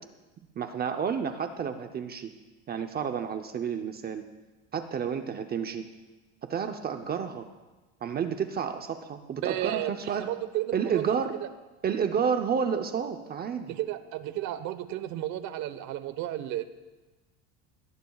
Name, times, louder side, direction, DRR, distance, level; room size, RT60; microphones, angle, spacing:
voice 1, 0.6-2.3 2.7-4.3 4.7-5.9 6.5-7.4 8.0-10.3 10.7-11.3 11.8-13.7, right 7 dB, 25° right, 7 dB, 0.7 m, -30 dB
voice 2, 9.4-11.5 13.7-16.6, right 13 dB, 50° right, 12 dB, 1.1 m, -33 dB
22.0 x 17.5 x 2.4 m, 1.2 s
supercardioid pair, 130°, 36 cm